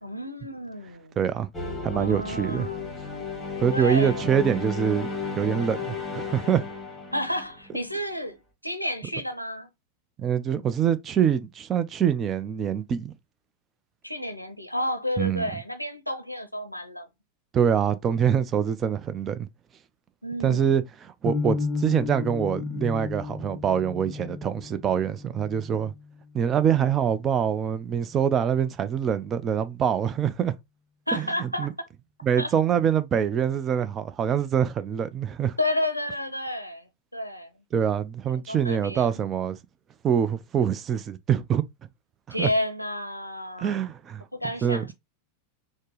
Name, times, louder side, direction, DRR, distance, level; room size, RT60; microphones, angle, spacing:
voice 1, 0.0-1.2 1.8-3.0 3.7-4.2 7.1-8.4 8.6-9.7 14.0-17.1 20.2-20.7 31.1-31.7 32.4-32.5 35.6-37.5 38.3-39.1 42.3-43.8 44.3-44.9, left 1 dB, 90° left, 0.5 m, -31 dB
voice 2, 1.2-1.5 1.8-2.7 3.6-5.1 5.4-6.6 10.2-13.1 15.2-15.5 17.5-19.5 20.4-25.9 26.3-30.5 31.1-31.7 32.2-35.6 37.7-39.6 40.0-41.6 42.4-42.5 43.6-44.2 44.6-44.9, right 8 dB, 25° right, 0.4 m, -25 dB
sound 1, 1.5-8.0, left 4 dB, 5° left, 1.4 m, -34 dB
sound 2, 21.3-27.3, left 4 dB, 20° left, 0.7 m, -34 dB
4.2 x 2.0 x 3.0 m
figure-of-eight pair, 90°, 0 cm